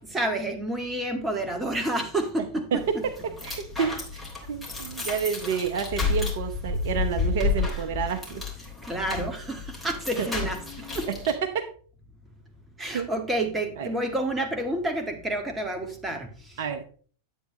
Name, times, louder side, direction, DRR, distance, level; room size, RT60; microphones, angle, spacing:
voice 1, 0.0-2.8 5.2-5.3 8.8-11.1 12.8-16.3, right 1 dB, 10° right, 5 dB, 1.7 m, -29 dB
sound 1, 2.7-11.3, left 4 dB, 10° left, 3.3 m, -31 dB
voice 2, 2.7-4.2 4.5-8.4 9.1-9.3 10.2-10.3 11.1-11.7 12.9-13.1 13.8-13.9 16.6-16.8, right 7 dB, 55° right, 7 dB, 0.9 m, -29 dB
10.0 x 8.2 x 3.2 m, 0.43 s
figure-of-eight pair, 90°, 0 cm